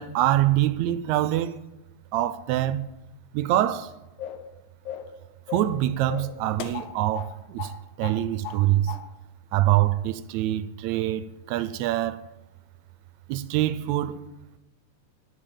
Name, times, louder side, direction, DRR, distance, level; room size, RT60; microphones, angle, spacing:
voice 1, 0.0-1.6 2.1-2.8 3.3-3.9 5.5-7.7 8.0-8.9 9.5-12.2 13.3-14.2, right 13 dB, 80° right, 1.8 m, -25 dB
sound 1, 4.2-4.5 4.8-5.2 5.5-5.8 6.1-7.3 7.6-7.8 8.0-8.6 8.9-9.0, left 10 dB, 90° left, 2.3 m, -36 dB
9.8 x 7.1 x 8.7 m
omnidirectional pair, 3.3 m